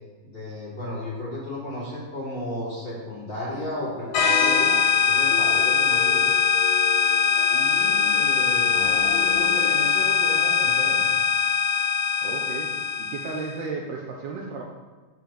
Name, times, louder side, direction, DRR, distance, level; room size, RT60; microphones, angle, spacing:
voice 1, 0.2-6.3 7.5-11.1, left 1 dB, 30° left, -7 dB, 3.1 m, -34 dB
sound 1, 3.4-9.9, left 7 dB, 90° left, 3.3 m, -38 dB
sound 2, 4.1-13.5, left 7 dB, 65° left, 1.9 m, -21 dB
voice 2, 12.2-14.6, right 4 dB, 70° right, -1 dB, 2.7 m, -34 dB
7.6 x 7.4 x 7.1 m, 1.3 s
omnidirectional pair, 5.3 m